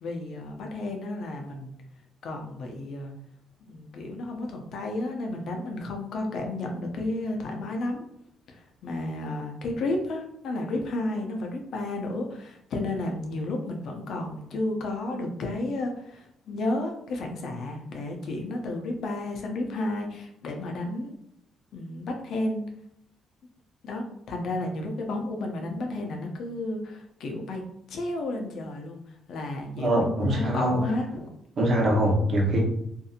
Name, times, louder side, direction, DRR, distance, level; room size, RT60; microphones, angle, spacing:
voice 1, 0.0-1.7 2.2-3.1 3.6-8.0 8.5-21.1 21.7-22.6 23.8-27.6 27.9-29.0 29.3-31.3, left 2 dB, 70° left, 2 dB, 0.6 m, -32 dB
voice 2, 29.8-30.8 31.6-32.6, right 1 dB, 55° right, -2 dB, 0.9 m, -23 dB
2.6 x 2.6 x 2.4 m, 0.73 s
cardioid pair, 90°, 0 cm